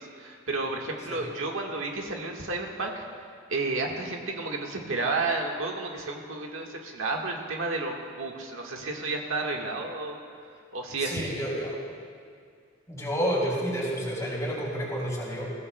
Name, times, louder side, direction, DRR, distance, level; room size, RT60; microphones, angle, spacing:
voice 1, 0.0-3.0 3.5-10.2 10.7-11.2, right 3 dB, 85° right, 0 dB, 1.4 m, -31 dB
voice 2, 11.0-11.8 12.9-15.5, equal, 15° left, -5 dB, 3.8 m, -30 dB
20.5 x 15.5 x 2.2 m, 2.2 s
head